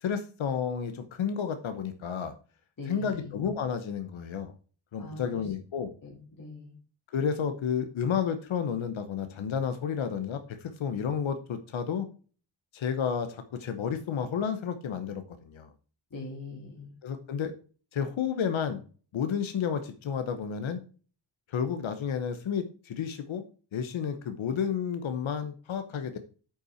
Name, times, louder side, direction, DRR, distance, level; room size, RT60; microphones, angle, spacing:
voice 1, 0.0-2.3 2.9-4.5 4.9-5.9 7.1-12.1 12.7-15.7 17.0-17.5 17.9-18.8 19.1-20.8 21.5-23.4 23.7-26.2, left 7 dB, 85° left, 9 dB, 1.0 m, -31 dB
voice 2, 2.8-3.3 5.0-5.5 6.0-6.7 16.1-17.0, left 3 dB, 45° left, -2 dB, 2.2 m, -42 dB
8.8 x 5.6 x 4.3 m, 0.39 s
wide cardioid pair, 145°, 46 cm